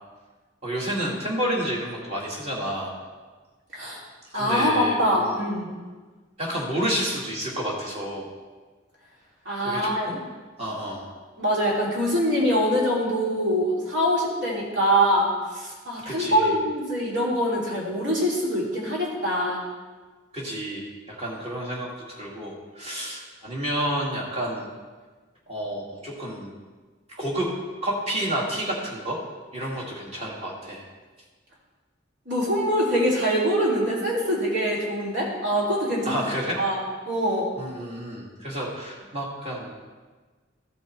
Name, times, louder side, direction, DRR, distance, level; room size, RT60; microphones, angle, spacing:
voice 1, 0.6-2.9 4.3-5.4 6.4-8.3 9.6-10.2 10.6-11.1 16.0-16.5 20.3-24.7 25.5-26.5 27.1-27.5 27.8-29.2 29.5-30.8 36.1-36.6 37.6-39.7, right 1 dB, 30° right, -3 dB, 2.1 m, -30 dB
voice 2, 4.3-5.7 9.4-10.1 11.4-19.6 32.3-36.2 36.6-37.5, equal, 65° right, -5 dB, 2.9 m, -24 dB
14.0 x 5.4 x 4.5 m, 1.4 s
head